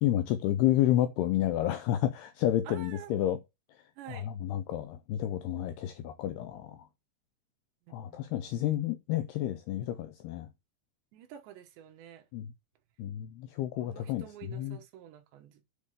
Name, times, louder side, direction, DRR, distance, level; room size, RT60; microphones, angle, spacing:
voice 1, 0.0-3.4 4.1-6.9 7.9-10.5 12.3-12.5 13.0-14.8, left 12 dB, 90° left, 2.3 m, -30 dB
voice 2, 2.7-3.1 4.0-4.3 7.9-8.7 11.1-12.3 13.8-15.6, right 11 dB, 75° right, 3.4 m, -49 dB
8.1 x 5.4 x 6.6 m
omnidirectional pair, 5.4 m